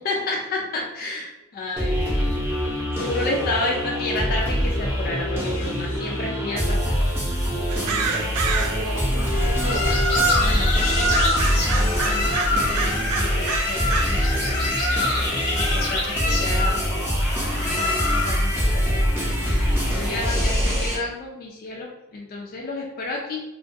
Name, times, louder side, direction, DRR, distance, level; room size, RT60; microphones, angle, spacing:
voice 1, 0.0-2.3 2.9-7.0 7.9-8.3 10.4-14.5 15.6-16.9 17.7-19.5 19.9-23.4, left 2 dB, 40° left, -1 dB, 0.3 m, -31 dB
sound 1, 1.8-21.0, equal, 10° right, 0.6 m, -24 dB
voice 2, 7.6-8.2 8.6-10.1, right 1 dB, 60° right, -3 dB, 0.8 m, -35 dB
sound 2, 7.7-9.0 9.6-9.7 11.1-14.2 14.6-14.7 15.4-15.5 16.0-16.1, right 5 dB, 80° right, 0.3 m, -28 dB
sound 3, 9.3-18.5, left 2 dB, 85° left, 0.6 m, -25 dB
2.3 x 2.2 x 2.5 m, 0.93 s
head